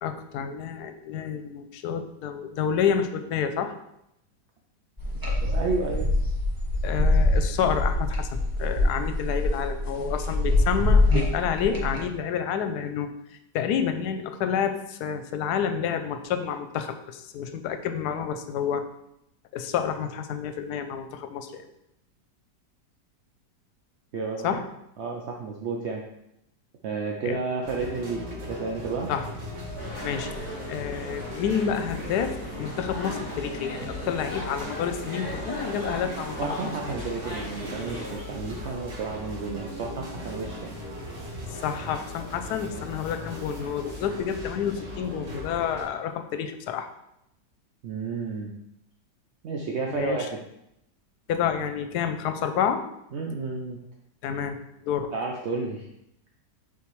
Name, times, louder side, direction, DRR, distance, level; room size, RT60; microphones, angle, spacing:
voice 1, 0.0-3.7 6.8-8.3 8.6-13.1 13.5-18.9 19.5-21.6 24.4-24.6 27.2-27.4 29.1-29.3 30.0-30.3 30.7-32.3 32.6-36.7 41.6-46.9 49.9-50.2 51.3-52.8 54.2-54.6 54.8-55.1, left 7 dB, 75° left, 8 dB, 1.1 m, -29 dB
sound 1, 5.0-12.0, left 2 dB, 15° right, 1.0 m, -24 dB
voice 2, 5.4-6.1 24.1-24.6 25.0-26.0 26.8-29.1 36.4-40.8 47.8-48.5 49.4-50.4 53.1-53.8 55.1-55.9, right 4 dB, 60° right, 0 dB, 0.7 m, -31 dB
sound 2, 27.6-45.8, left 1 dB, 80° right, 2.1 m, -38 dB
sound 3, 29.8-38.1, equal, 35° right, 2.9 m, -38 dB
7.0 x 4.7 x 3.1 m, 0.80 s
omnidirectional pair, 1.8 m